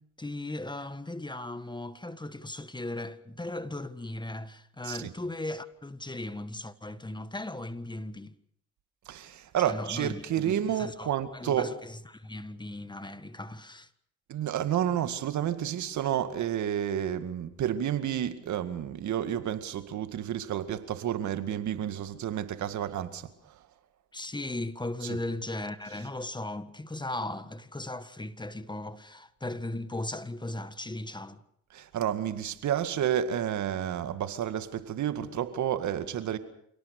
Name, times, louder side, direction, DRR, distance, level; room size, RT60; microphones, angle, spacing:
voice 1, 0.0-8.3 9.6-13.9 24.1-31.4, left 2 dB, 15° left, 1.5 m, -37 dB
voice 2, 9.1-11.7 14.3-23.7 25.0-25.2 31.7-36.4, right 10 dB, 70° right, 2.1 m, -30 dB
27.5 x 18.0 x 6.8 m
supercardioid pair, 65°, 30 cm